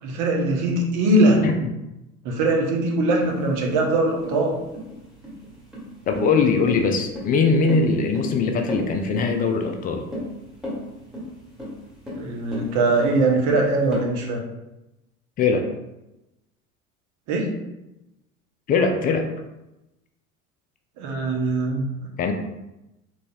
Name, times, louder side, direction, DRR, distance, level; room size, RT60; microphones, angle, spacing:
voice 1, 0.0-1.4 2.2-4.6 12.1-14.4 17.3-17.5 21.0-21.9, right 2 dB, 45° right, 0 dB, 1.0 m, -21 dB
sound 1, 3.2-14.1, left 1 dB, ahead, 1.3 m, -34 dB
voice 2, 6.1-10.0 15.4-15.7 18.7-19.2 22.2-22.3, left 4 dB, 25° left, 4 dB, 0.3 m, -21 dB
3.9 x 3.2 x 2.3 m, 0.94 s
figure-of-eight pair, 65°, 41 cm